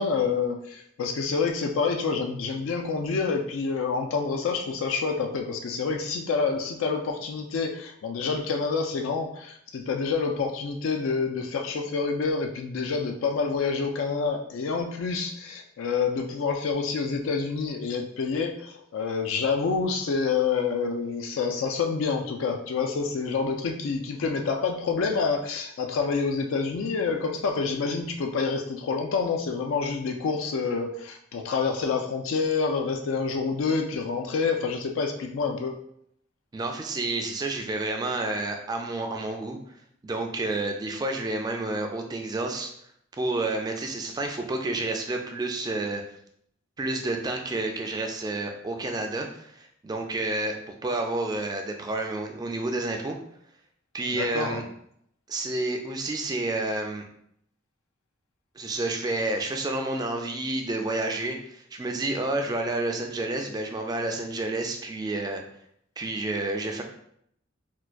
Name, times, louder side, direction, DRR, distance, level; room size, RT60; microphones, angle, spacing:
voice 1, 0.0-35.8 54.1-54.6, left 5 dB, 80° left, 3 dB, 0.4 m, -27 dB
voice 2, 36.5-39.6 40.0-42.7 43.2-46.0 46.8-53.2 53.9-54.6 55.3-57.1 58.6-65.4 66.0-66.8, right 2 dB, 20° right, 3 dB, 0.3 m, -30 dB
4.4 x 2.2 x 2.4 m, 0.70 s
head